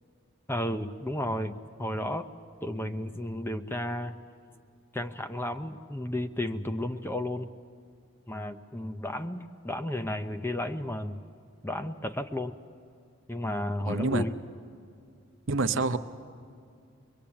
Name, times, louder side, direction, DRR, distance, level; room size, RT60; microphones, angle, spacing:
voice 1, 0.5-2.3 2.6-4.2 4.9-7.5 8.3-11.2 11.6-12.6 13.3-14.3, left 1 dB, 10° left, 7 dB, 0.6 m, -33 dB
voice 2, 13.8-14.2 15.5-16.0, right 3 dB, 55° right, 10 dB, 0.7 m, -27 dB
23.5 x 22.0 x 8.8 m, 2.4 s
head